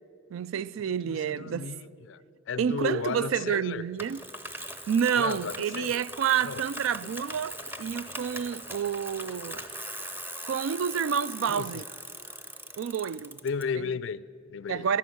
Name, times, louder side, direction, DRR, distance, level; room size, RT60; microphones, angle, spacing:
voice 1, 0.3-1.7 2.6-4.2 4.9-9.7 10.4-11.8 12.8-13.4 13.7-13.9 14.7-15.0, right 8 dB, 80° right, 0.3 m, -29 dB
voice 2, 1.0-2.2 2.5-3.8 5.2-6.0 6.4-6.6 11.5-11.8 13.4-14.9, left 5 dB, 65° left, 0.4 m, -34 dB
Bicycle, 4.0-13.6, right 1 dB, 10° right, 0.7 m, -40 dB
12.5 x 11.5 x 9.4 m
head